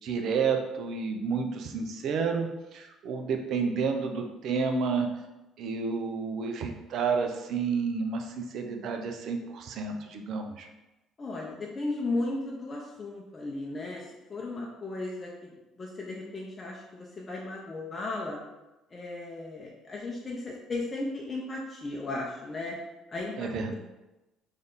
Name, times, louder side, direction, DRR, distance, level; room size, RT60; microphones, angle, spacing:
voice 1, 0.0-5.1 5.6-10.7 23.4-23.7, right 5 dB, 65° right, 4 dB, 0.5 m, -30 dB
voice 2, 11.2-15.5 15.8-18.4 18.9-22.8 23.1-23.7, left 2 dB, 35° left, -3 dB, 0.7 m, -35 dB
3.3 x 2.7 x 3.8 m, 1.0 s
hypercardioid pair, 60°, 0 cm